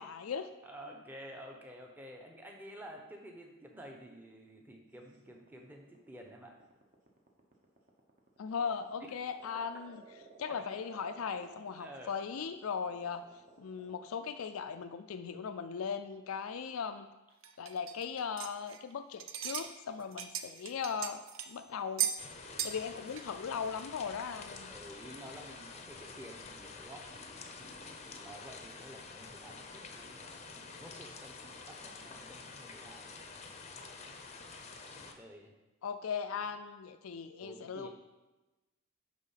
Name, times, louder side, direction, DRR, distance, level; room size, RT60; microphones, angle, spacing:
voice 1, 0.0-0.5 8.4-10.0 10.4-13.2 13.6-17.1 17.6-22.1 22.6-24.7 35.8-37.9, left 6 dB, 75° left, 9 dB, 0.4 m, -38 dB
voice 2, 0.6-6.5 9.0-9.1 11.8-12.1 20.0-20.1 24.7-33.3 33.7-34.2 34.7-35.5 37.4-37.9, equal, 10° right, 1 dB, 0.9 m, -51 dB
sound 1, 5.1-14.1, right 5 dB, 40° right, 1.1 m, -56 dB
sound 2, 17.4-18.9 19.2-19.7 20.0-21.5 22.0-22.2 22.6-22.8 23.1-23.2 23.8-23.9, right 9 dB, 65° right, 0.6 m, -36 dB
sound 3, 22.2-35.1, left 4 dB, 30° left, 0.6 m, -48 dB
9.8 x 3.7 x 5.7 m, 1.1 s
head